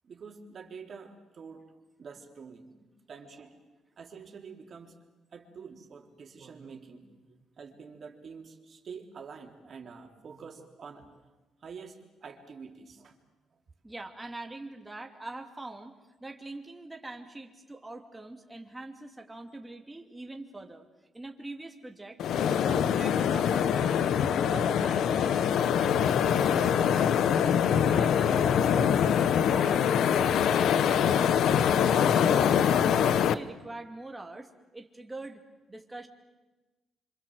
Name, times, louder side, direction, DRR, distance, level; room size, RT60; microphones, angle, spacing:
voice 1, 0.0-1.6 2.0-3.5 4.0-5.0 5.3-11.3 11.6-13.2, right 5 dB, 50° right, 3 dB, 3.8 m, -47 dB
voice 2, 13.8-15.9 16.2-20.9 21.1-22.2 22.5-24.1 24.4-25.4 25.8-29.9 30.1-30.3 30.7-31.4 31.7-35.4 35.7-36.1, right 2 dB, 15° right, 3 dB, 2.8 m, -43 dB
sound 1, 22.2-33.3, left 8 dB, 75° left, 1.0 m, -24 dB
26.5 x 26.0 x 8.0 m, 1.2 s
cardioid pair, 90°, 0 cm